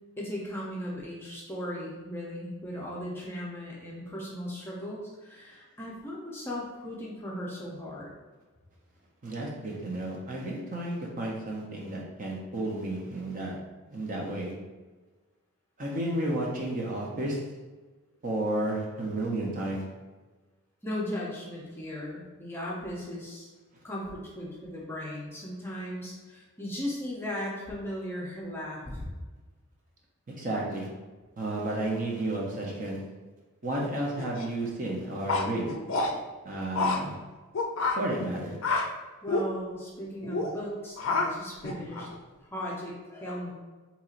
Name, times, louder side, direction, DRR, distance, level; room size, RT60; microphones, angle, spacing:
voice 1, 0.2-8.1 20.8-23.5 23.8-29.1 39.2-42.1 42.4-43.5, equal, 10° left, -4 dB, 0.6 m, -37 dB
voice 2, 9.2-13.6 13.9-14.5 15.8-17.4 18.2-19.8 30.3-30.9 31.4-33.0 33.6-35.7 36.4-37.1 37.9-38.6, right 1 dB, 35° right, -2 dB, 0.5 m, -32 dB
sound 1, 34.2-34.5 35.3-36.1 36.8-37.0 37.5-38.0 38.6-38.8 39.3-39.4 40.2-40.5 41.0-41.3 41.6-42.2, left 3 dB, 60° left, 0.4 m, -28 dB
4.3 x 2.9 x 2.4 m, 1.3 s
head